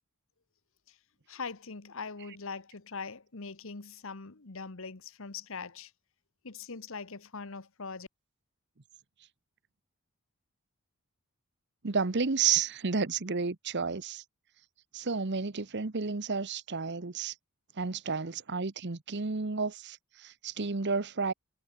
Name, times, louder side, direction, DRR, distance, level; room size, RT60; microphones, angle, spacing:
voice 1, 1.3-5.9 6.4-8.1, left 4 dB, 65° left, 1.3 m, -41 dB
voice 2, 11.8-14.2 14.9-17.3 17.8-21.3, right 5 dB, 50° right, 1.0 m, -31 dB
head